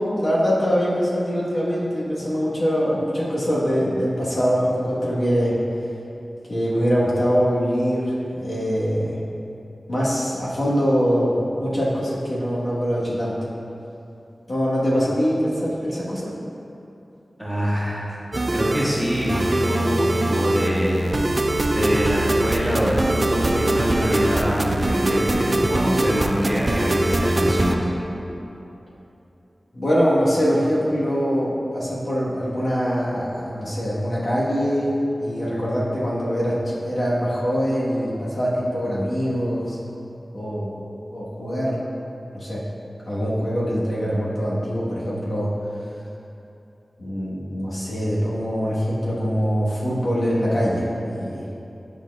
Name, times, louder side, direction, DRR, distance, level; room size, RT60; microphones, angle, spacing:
voice 1, 0.1-5.6 6.5-9.2 9.9-13.5 14.5-16.3 29.7-39.8 40.3-40.8 41.1-41.8 42.3-42.6 43.1-45.5 47.0-51.5, equal, 60° left, -7 dB, 1.3 m, -23 dB
voice 2, 17.4-18.2 18.5-21.0 21.7-27.9, equal, 5° right, -7 dB, 1.4 m, -24 dB
sound 1, 18.3-27.7, right 1 dB, 45° right, 0.3 m, -22 dB
9.8 x 4.1 x 2.4 m, 2.8 s
wide cardioid pair, 55°, 0 cm